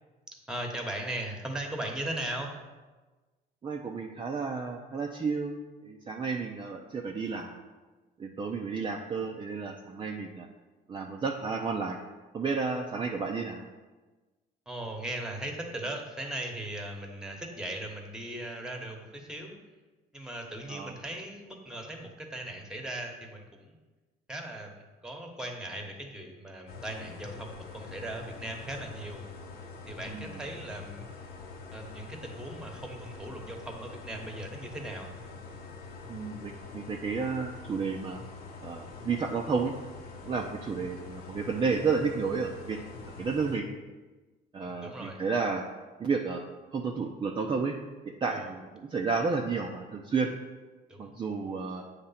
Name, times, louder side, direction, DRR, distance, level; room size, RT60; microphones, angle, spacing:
voice 1, 0.5-2.5 14.7-19.5 20.1-23.8 24.3-29.2 29.9-31.0 31.7-35.1 44.6-45.2 48.3-48.5 50.9-51.1, right 1 dB, 5° right, 2 dB, 1.2 m, -38 dB
voice 2, 3.6-5.6 5.8-7.6 8.2-10.5 10.9-12.0 12.3-13.7 20.7-20.9 30.1-30.3 36.1-38.2 38.6-39.7 40.2-42.8 43.2-43.7 44.5-45.6 46.0-46.4 46.7-47.8 48.2-50.3 51.0-51.8, right 5 dB, 30° right, 1 dB, 0.6 m, -31 dB
sound 1, 26.7-43.6, left 4 dB, 70° left, 1.0 m, -45 dB
8.3 x 3.3 x 5.7 m, 1.2 s
cardioid pair, 110°, 17 cm